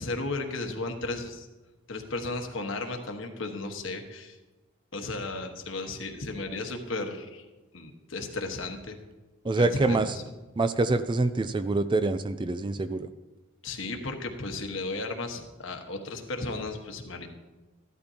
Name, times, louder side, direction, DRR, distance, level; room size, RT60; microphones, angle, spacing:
voice 1, 0.0-1.5 1.9-4.4 4.9-7.4 7.7-9.0 9.6-10.2 13.6-17.3, left 2 dB, 65° left, 4 dB, 1.4 m, -34 dB
voice 2, 9.4-10.1 10.6-13.1, right 2 dB, 20° right, 11 dB, 0.3 m, -25 dB
15.0 x 12.0 x 2.9 m, 1.2 s
head